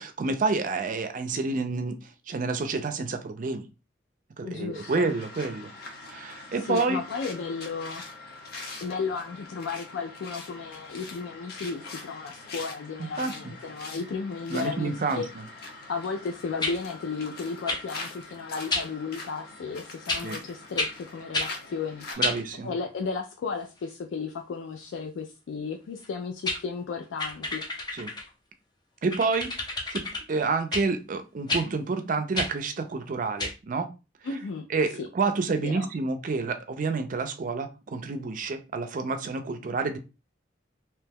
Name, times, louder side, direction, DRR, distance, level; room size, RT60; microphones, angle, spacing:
voice 1, 0.0-2.0 2.3-3.7 4.4-5.7 6.1-7.0 13.2-13.3 14.5-15.2 20.2-20.4 22.2-22.7 27.9-28.1 29.0-29.5 29.9-30.0 30.3-33.9 34.7-40.0, right 4 dB, 45° right, 8 dB, 0.4 m, -28 dB
voice 2, 4.4-5.1 6.6-8.0 8.8-15.3 15.9-22.3 22.6-27.6 34.2-34.7 35.0-35.1 35.6-35.9, left 5 dB, 90° left, 4 dB, 0.4 m, -34 dB
sound 1, 4.7-22.1, left 3 dB, 55° left, 0.7 m, -43 dB
sound 2, 16.6-16.8 17.7-17.8 18.7-18.9 20.1-20.3 20.8-20.9 21.3-21.5 22.2-22.4 26.0-26.1 26.4-26.6 27.2-28.3 29.1-30.2 30.7-30.9 31.5-31.7 32.3-32.5 33.4-33.5, left 2 dB, 25° left, 0.5 m, -29 dB
2.8 x 2.2 x 3.4 m, 0.30 s
head